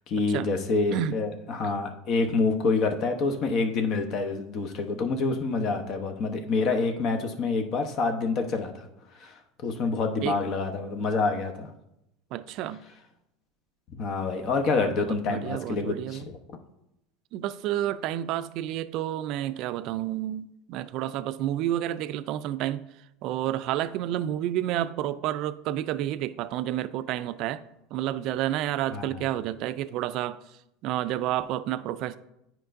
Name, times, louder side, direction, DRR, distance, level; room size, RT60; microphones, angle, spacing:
voice 1, 0.1-8.9 9.2-11.7 13.9-16.4 28.9-29.2, left 3 dB, 50° left, 0.9 m, -27 dB
voice 2, 12.3-12.8 14.8-16.2 17.3-22.8 23.2-27.6 27.9-30.4 30.8-32.2, right 12 dB, 55° right, 0.3 m, -30 dB
9.7 x 4.4 x 2.6 m
supercardioid pair, 100°, 0 cm